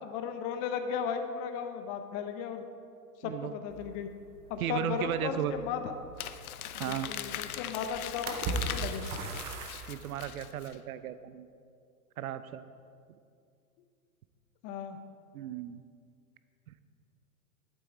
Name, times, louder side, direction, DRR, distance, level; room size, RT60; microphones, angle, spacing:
voice 1, 0.0-2.6 3.2-4.1 4.5-5.8 6.7-9.1 14.6-15.0, left 7 dB, 30° left, 7 dB, 0.7 m, -36 dB
sound 1, 3.7-10.4, right 3 dB, 15° right, 0.3 m, -41 dB
voice 2, 4.6-5.5 6.8-7.1 9.9-11.5 12.2-12.6 15.3-15.8, right 11 dB, 65° right, 13 dB, 0.7 m, -35 dB
Crumpling crinkling, 6.2-10.8, left 11 dB, 65° left, 0.7 m, -40 dB
11.5 x 7.7 x 4.6 m, 2.3 s
hypercardioid pair, 120°, 47 cm